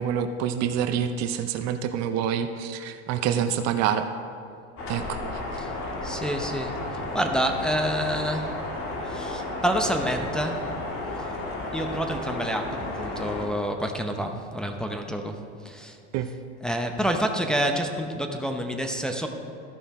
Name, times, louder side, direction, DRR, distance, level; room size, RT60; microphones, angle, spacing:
voice 1, 0.0-4.1 4.9-5.2 16.1-16.3, right 8 dB, 50° right, 9 dB, 0.6 m, -26 dB
sound 1, 4.8-13.5, left 2 dB, 40° left, 1.8 m, -33 dB
voice 2, 6.0-8.7 9.0-10.8 11.2-11.3 11.7-16.0 16.6-19.3, equal, ahead, 3 dB, 0.8 m, -28 dB
13.5 x 5.5 x 4.3 m, 2.4 s
supercardioid pair, 100°, 34 cm